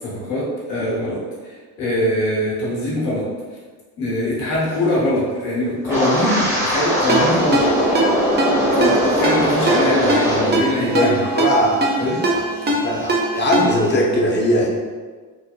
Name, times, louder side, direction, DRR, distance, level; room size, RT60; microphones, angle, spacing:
voice 1, 0.0-3.3 4.0-7.6 8.7-11.2 12.0-12.2, left 1 dB, 80° left, -6 dB, 1.1 m, -22 dB
Wind, 5.8-10.7 11.0-11.4 11.8-12.1, equal, 5° right, 0.9 m, -20 dB
Ringtone, 7.1-14.0, right 2 dB, 25° right, 0.5 m, -22 dB
voice 2, 10.5-12.4 12.8-14.7, equal, 25° left, -3 dB, 0.6 m, -20 dB
2.7 x 2.1 x 2.3 m, 1.4 s
hypercardioid pair, 65°, 45 cm